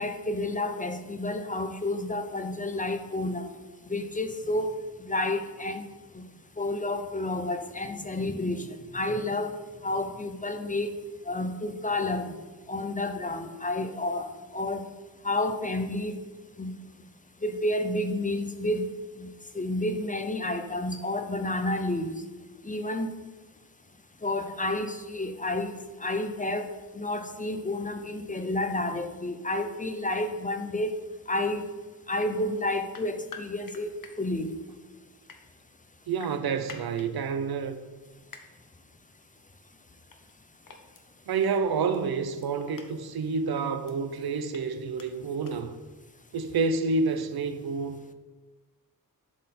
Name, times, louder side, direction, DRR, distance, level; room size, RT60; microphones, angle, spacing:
voice 1, 0.0-3.5 3.8-5.8 6.1-6.2 6.6-9.5 9.8-11.0 11.3-12.3 12.7-14.3 14.5-14.8 15.2-16.2 16.6-16.7 17.4-18.9 19.2-22.2 22.6-23.1 24.2-31.0 31.3-31.7 32.1-34.5, left 2 dB, 20° left, 0.5 m, -30 dB
sound 1, 32.2-32.3 32.9-34.1 35.1-35.4 36.2-37.1 38.3-38.4 40.1-40.3 40.6-41.0 41.9-42.0 42.4-42.9 43.5-43.9 44.5-44.6 45.0-45.1 45.4-45.5, left 6 dB, 60° left, 0.9 m, -46 dB
voice 2, 36.1-37.8 41.3-45.8 46.3-48.0, right 4 dB, 80° right, 0.6 m, -29 dB
11.0 x 4.3 x 4.2 m
wide cardioid pair, 145°, 37 cm